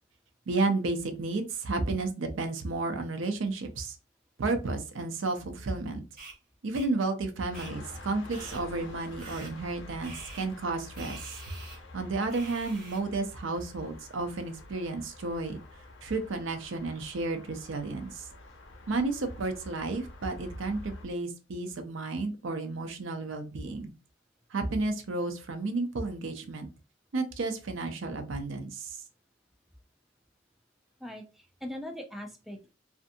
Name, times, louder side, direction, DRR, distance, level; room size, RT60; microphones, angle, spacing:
voice 1, 0.5-4.0 4.4-6.0 6.6-11.4 11.7-15.6 16.0-18.3 18.9-23.9 24.5-26.7 27.1-29.0, right 3 dB, 85° right, 6 dB, 0.5 m, -32 dB
sound 1, 6.2-6.3 6.7-6.9 7.5-7.7 8.3-8.6 9.2-9.5 10.0-10.5 10.9-11.8 12.3-13.0, right 3 dB, 50° right, 1.0 m, -46 dB
sound 2, 7.5-21.1, left 2 dB, 70° left, 0.7 m, -47 dB
voice 2, 31.0-32.7, left 1 dB, ahead, 2 dB, 0.4 m, -41 dB
2.5 x 2.5 x 2.5 m, 0.31 s
head